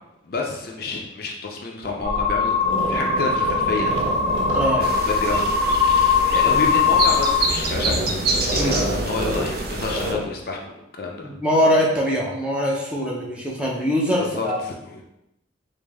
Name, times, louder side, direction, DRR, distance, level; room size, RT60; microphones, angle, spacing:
voice 1, 0.2-2.6 2.9-4.1 4.7-5.6 6.2-11.3 14.2-15.0, left 3 dB, 50° left, 0 dB, 0.5 m, -29 dB
sound 1, 1.8-2.0 2.6-5.8 6.4-7.0 7.3-10.3, right 1 dB, 80° right, 0.9 m, -29 dB
sound 2, 2.0-7.4, left 5 dB, 25° right, 1.1 m, -21 dB
voice 2, 4.5-4.9 6.4-6.7 8.5-8.8 11.2-14.6, equal, 5° right, -4 dB, 0.6 m, -22 dB
sound 3, 4.8-10.1, right 2 dB, 50° right, 0.5 m, -27 dB
5.1 x 2.0 x 3.4 m, 0.87 s
head